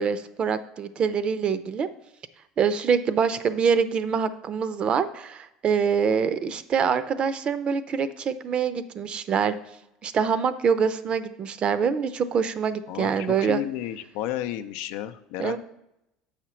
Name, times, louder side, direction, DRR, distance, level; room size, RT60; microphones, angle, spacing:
voice 1, 0.0-1.9 2.6-9.6 10.0-13.6 15.4-15.6, right 6 dB, 40° right, 13 dB, 0.5 m, -25 dB
voice 2, 12.9-15.6, left 12 dB, 75° left, 10 dB, 0.5 m, -32 dB
7.5 x 5.0 x 4.3 m, 0.85 s
supercardioid pair, 95°, 3 cm